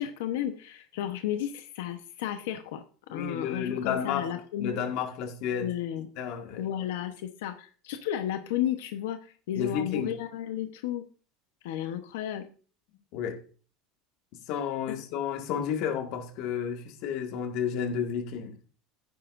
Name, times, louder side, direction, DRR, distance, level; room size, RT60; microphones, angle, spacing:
voice 1, 0.0-2.8 3.1-4.8 5.6-6.1 6.6-11.0 11.6-12.5, left 11 dB, 90° left, 1.0 m, -33 dB
voice 2, 3.1-4.3 4.6-5.7 6.2-6.7 9.6-10.1 13.1-13.4 14.5-18.5, left 8 dB, 55° left, 1.8 m, -31 dB
14.0 x 10.5 x 2.6 m
cardioid pair, 160°, 0 cm